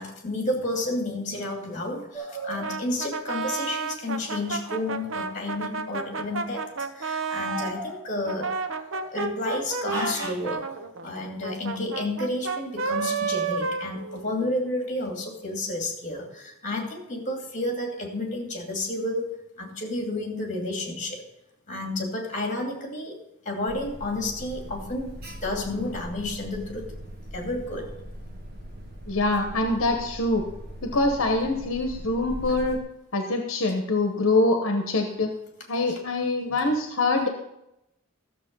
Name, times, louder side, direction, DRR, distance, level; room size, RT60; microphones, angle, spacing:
voice 1, 0.0-6.7 6.9-8.5 9.1-10.6 11.0-19.3 19.6-21.2 21.7-23.1 23.4-25.1 25.4-26.9 27.3-27.9, left 2 dB, 35° left, 2 dB, 2.5 m, -31 dB
sound 1, 2.1-2.7 4.2-5.4 6.2-6.6 7.2-9.3 9.9-10.5, equal, 15° right, 2.8 m, -38 dB
Brass instrument, 2.6-7.8 8.2-14.6, right 4 dB, 65° right, 0.8 m, -31 dB
Alarm, 23.7-32.8, equal, 45° right, 1.8 m, -40 dB
voice 2, 29.1-30.4 30.8-32.8 33.1-35.3 35.7-37.3, left 2 dB, 65° left, 4 dB, 1.1 m, -24 dB
13.0 x 7.1 x 5.4 m, 0.84 s
head